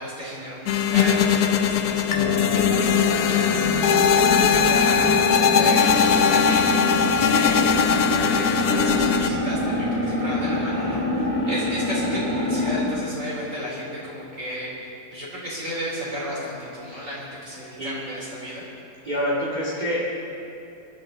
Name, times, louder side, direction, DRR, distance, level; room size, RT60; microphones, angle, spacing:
voice 1, 0.0-18.6, equal, 40° right, -7 dB, 4.3 m, -34 dB
sound 1, 0.7-9.3, left 7 dB, 65° left, 1.1 m, -20 dB
sound 2, 2.1-13.0, left 1 dB, 10° left, 1.5 m, -25 dB
voice 2, 19.0-20.0, equal, 25° right, -6 dB, 2.3 m, -28 dB
23.5 x 12.0 x 4.0 m, 2.8 s
omnidirectional pair, 2.0 m